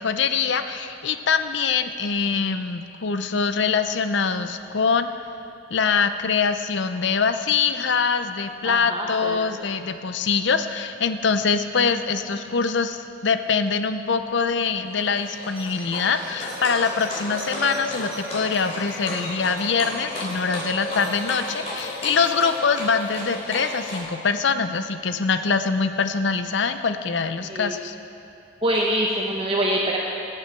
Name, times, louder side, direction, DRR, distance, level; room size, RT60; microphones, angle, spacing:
voice 1, 0.0-5.1 5.7-28.0, left 5 dB, 65° left, 9 dB, 0.6 m, -24 dB
voice 2, 8.6-9.4 27.5-27.7 28.6-30.0, right 1 dB, 25° right, -2 dB, 0.9 m, -24 dB
Livestock farm animals working animals, 14.9-24.0, left 1 dB, 35° left, 3.2 m, -33 dB
19.5 x 7.7 x 4.6 m, 2.8 s
head